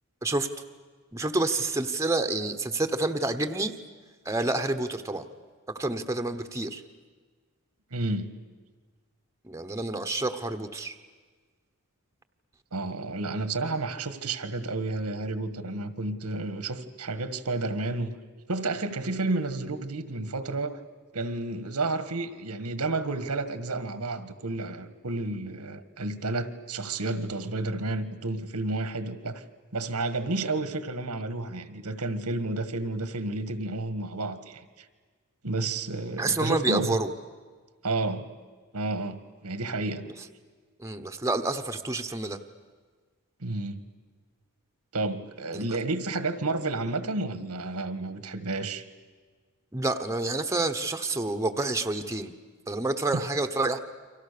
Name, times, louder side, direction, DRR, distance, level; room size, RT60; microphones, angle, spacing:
voice 1, 1.1-3.7 4.2-5.3 5.7-6.8 9.4-11.0 36.2-37.1 40.8-42.4 45.5-45.7 49.7-52.3 52.7-53.8, right 2 dB, 15° right, 6 dB, 1.1 m, -28 dB
voice 2, 7.9-8.3 12.7-18.2 18.5-20.8 21.1-29.4 29.7-34.9 35.4-37.0 37.8-38.3 38.7-40.1 43.4-43.8 44.9-48.8 53.1-53.2, right 2 dB, 85° right, 12 dB, 1.7 m, -31 dB
30.0 x 25.0 x 6.9 m, 1.5 s
head